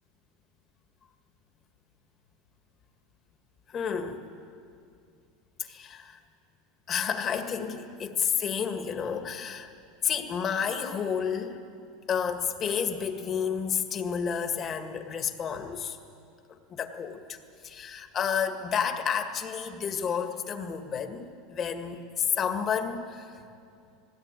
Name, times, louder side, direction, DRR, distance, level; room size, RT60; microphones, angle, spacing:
voice 1, 3.7-4.2 5.6-6.2 6.9-9.7 10.0-11.6 12.1-16.0 16.7-17.4 17.6-23.3, left 7 dB, 35° left, 6 dB, 1.8 m, -30 dB
20.5 x 17.0 x 9.1 m, 2.5 s
supercardioid pair, 125°, 0 cm